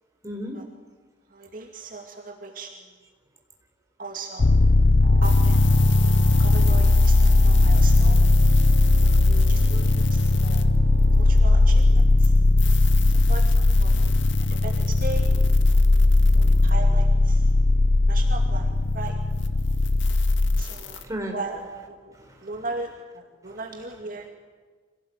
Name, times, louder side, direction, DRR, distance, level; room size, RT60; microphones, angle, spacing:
voice 1, 0.2-0.6 15.7-16.6 20.7-21.3 22.1-22.4, equal, 15° right, 2 dB, 4.3 m, -36 dB
voice 2, 1.3-2.9 4.0-4.6 5.2-5.7 6.4-8.3 9.0-10.7 11.1-12.4 13.1-14.1 14.4-15.4 16.3-17.5 18.1-19.2 20.6-21.0 21.3-24.3, right 3 dB, 45° right, 2 dB, 2.4 m, -38 dB
sound 1, 4.4-20.6, left 2 dB, 55° left, 0.7 m, -18 dB
sound 2, 5.0-11.8, right 4 dB, 85° right, 2.4 m, -43 dB
sound 3, 5.2-11.4 11.7-16.7 19.1-19.2 19.3-21.0, left 12 dB, 80° left, 2.0 m, -39 dB
26.5 x 18.0 x 9.7 m, 1.5 s
head